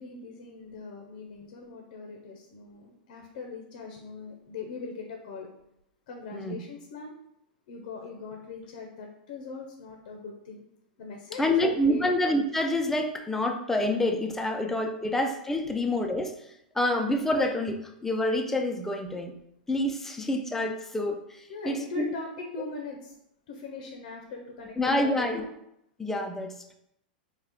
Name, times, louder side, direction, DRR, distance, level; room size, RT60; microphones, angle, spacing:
voice 1, 0.0-5.5 6.1-7.1 7.7-10.6 11.0-12.1 15.6-15.8 21.5-23.1 23.5-25.5, left 4 dB, 55° left, 2 dB, 0.7 m, -40 dB
voice 2, 11.4-16.3 16.8-19.4 19.7-22.0 24.8-25.4 26.0-26.7, left 1 dB, 5° left, 4 dB, 0.5 m, -27 dB
4.3 x 2.4 x 3.5 m, 0.77 s
figure-of-eight pair, 100°, 5 cm